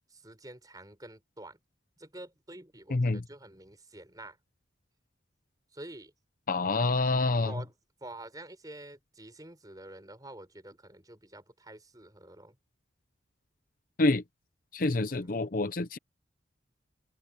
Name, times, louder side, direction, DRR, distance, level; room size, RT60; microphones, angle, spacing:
voice 1, 0.1-1.6 2.0-4.4 5.7-6.1 6.7-6.9 7.4-7.7 8.0-12.6 14.9-15.3, right 1 dB, 20° right, 4.6 m, -48 dB
voice 2, 2.9-3.2 6.5-7.5 14.0-14.2 14.7-16.0, left 2 dB, 45° left, 0.7 m, -27 dB
head